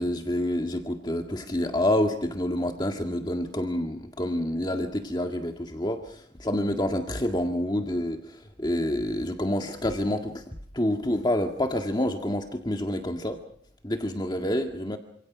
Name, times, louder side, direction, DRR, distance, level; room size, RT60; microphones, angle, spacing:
voice 1, 0.0-13.4 13.8-15.0, left 1 dB, 20° left, 4 dB, 1.9 m, -28 dB
28.0 x 26.5 x 6.2 m, 0.66 s
head